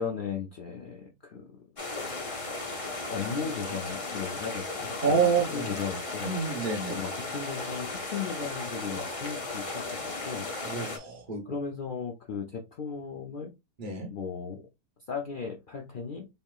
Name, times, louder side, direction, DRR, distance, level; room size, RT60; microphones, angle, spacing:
voice 1, 0.0-1.6 2.7-6.3 6.9-10.4 11.5-13.5 14.1-14.6 15.1-16.3, left 6 dB, 60° left, 0 dB, 0.5 m, -36 dB
sound 1, 1.8-11.0, left 3 dB, 30° left, 0.7 m, -36 dB
voice 2, 5.0-5.8 6.2-7.0 10.6-11.4 13.8-14.1, right 5 dB, 40° right, 0 dB, 0.8 m, -28 dB
4.3 x 3.6 x 2.3 m, 0.24 s
omnidirectional pair, 1.7 m